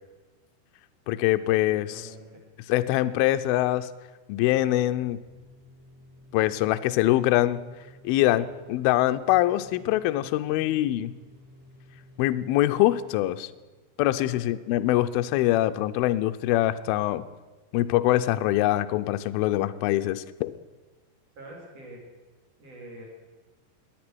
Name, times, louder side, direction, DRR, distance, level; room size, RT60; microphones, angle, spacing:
voice 1, 1.1-1.9 2.7-3.9 4.3-5.2 6.3-7.6 8.0-11.1 12.2-13.5 14.0-17.2 17.7-20.5, left 15 dB, 80° left, 10 dB, 2.2 m, -24 dB
voice 2, 1.6-2.4 14.1-14.5 21.4-22.0 22.6-23.1, right 1 dB, 35° right, -1 dB, 4.5 m, -45 dB
sound 1, 4.9-13.2, left 1 dB, ahead, 4.9 m, -52 dB
19.0 x 11.0 x 6.2 m, 1.2 s
omnidirectional pair, 4.9 m